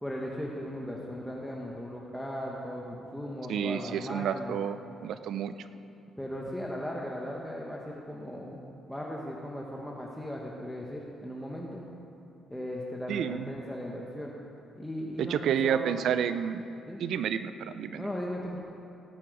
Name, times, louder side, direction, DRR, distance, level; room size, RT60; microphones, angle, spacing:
voice 1, 0.0-4.6 6.2-8.6 8.9-11.8 12.5-14.3 14.8-15.9 16.9-17.0 18.0-18.6, equal, 5° left, -3 dB, 1.5 m, -37 dB
voice 2, 3.5-5.7 13.1-13.5 15.2-16.6 17.0-18.1, right 8 dB, 75° right, 12 dB, 0.5 m, -30 dB
18.0 x 8.7 x 5.1 m, 2.7 s
cardioid pair, 90°, 0 cm